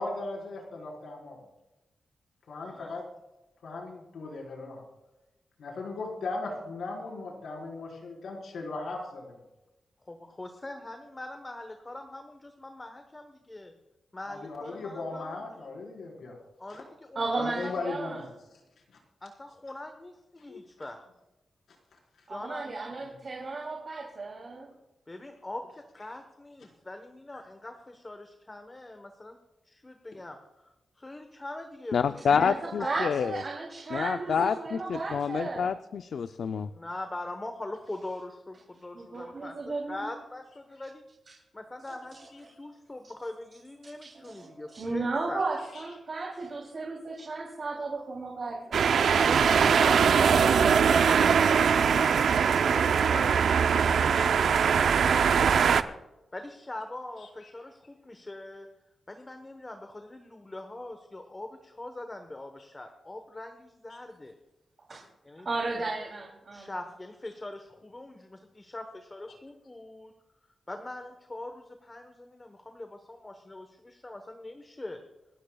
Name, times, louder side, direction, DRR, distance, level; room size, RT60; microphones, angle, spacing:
voice 1, 0.0-1.4 2.5-3.0 3.6-4.8 5.6-9.4 14.3-16.4 16.7-16.8 17.4-18.3 18.9-19.0 20.5-20.6 23.0-23.1 45.7-45.8 57.4-57.5, left 3 dB, 90° left, -2 dB, 4.5 m, -37 dB
voice 2, 10.1-13.7 14.1-15.4 16.6-17.7 19.2-21.0 22.3-22.9 25.1-29.4 29.6-30.7 31.0-32.4 32.8-32.9 36.7-39.6 39.9-41.0 41.5-45.4 49.0-51.6 51.9-54.5 55.0-55.5 56.3-58.7 59.1-64.3 65.2-65.5 66.5-70.1 70.7-75.0, left 2 dB, 20° left, 6 dB, 1.1 m, -42 dB
voice 3, 17.1-18.2 22.3-24.7 32.3-35.7 38.9-40.0 41.9-42.5 44.0-48.6 64.9-65.0 65.4-66.8, right 3 dB, 45° right, -1 dB, 2.9 m, -34 dB
voice 4, 31.9-33.4 33.9-36.7, left 6 dB, 75° left, 10 dB, 0.4 m, -28 dB
sound 1, 48.7-55.8, right 6 dB, 85° right, 0.6 m, -22 dB
27.0 x 13.0 x 2.3 m, 0.99 s
wide cardioid pair, 140°, 0 cm